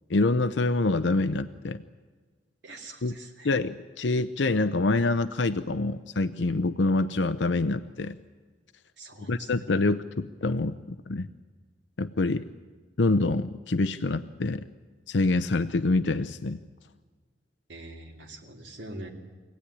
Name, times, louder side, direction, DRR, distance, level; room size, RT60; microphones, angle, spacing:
voice 1, 0.1-1.8 3.0-3.2 3.4-8.2 9.3-10.8 11.1-11.3 12.0-12.4 13.0-14.6 15.1-16.6, left 2 dB, 85° left, 10 dB, 0.7 m, -26 dB
voice 2, 2.6-3.5 9.0-9.5 17.7-19.1, right 1 dB, 75° right, -1 dB, 3.1 m, -43 dB
25.0 x 17.0 x 9.9 m, 1.4 s
head